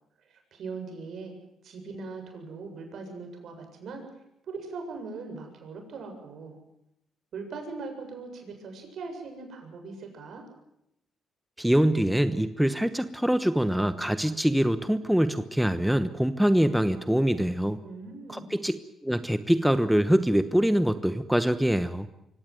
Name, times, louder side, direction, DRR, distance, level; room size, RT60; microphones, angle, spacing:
voice 1, 0.2-1.3 1.6-4.0 4.5-6.6 7.3-10.4 17.8-18.6, right 4 dB, 65° right, 4 dB, 7.4 m, -40 dB
voice 2, 11.6-17.8 18.3-22.1, equal, 5° right, 11 dB, 1.1 m, -24 dB
24.5 x 17.5 x 9.3 m, 0.82 s
cardioid pair, 90°, 0 cm